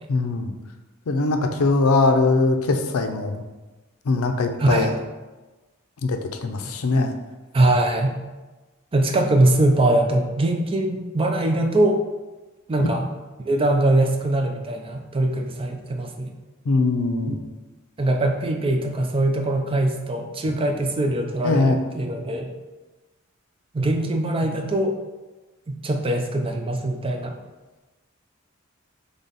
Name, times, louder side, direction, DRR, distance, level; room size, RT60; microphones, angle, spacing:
voice 1, 0.1-0.5 1.1-3.4 4.1-4.9 6.0-7.1 16.7-17.4 21.4-21.8, left 3 dB, 80° left, 6 dB, 0.5 m, -21 dB
voice 2, 4.6-5.0 7.5-8.2 8.9-12.0 12.7-13.1 13.4-16.3 17.3-17.4 18.0-22.5 23.7-24.9 25.7-27.4, right 1 dB, 25° right, 4 dB, 0.5 m, -22 dB
4.0 x 3.4 x 3.9 m, 1.2 s
head